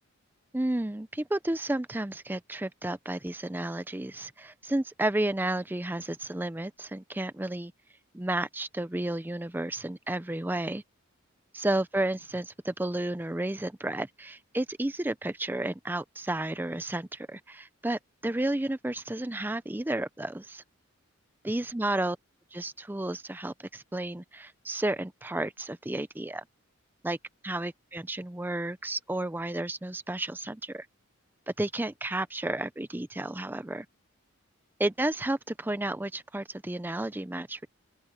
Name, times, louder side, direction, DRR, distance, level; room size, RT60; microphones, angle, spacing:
voice 1, 0.5-7.7 8.1-10.8 11.5-20.6 21.4-22.2 22.5-26.4 27.0-27.2 27.4-30.9 31.6-33.9 34.8-37.7, right 1 dB, 10° right, 0.4 m, -32 dB
open air
head